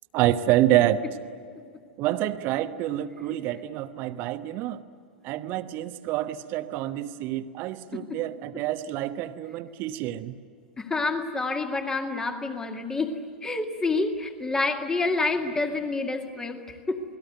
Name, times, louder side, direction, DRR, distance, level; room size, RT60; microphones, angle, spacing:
voice 1, 0.1-1.0 2.0-4.8 5.2-10.4, right 13 dB, 35° right, 11 dB, 1.2 m, -27 dB
voice 2, 10.8-17.0, left 3 dB, 10° left, 5 dB, 2.0 m, -28 dB
28.5 x 20.5 x 9.2 m, 2.2 s
figure-of-eight pair, 95°, 6 cm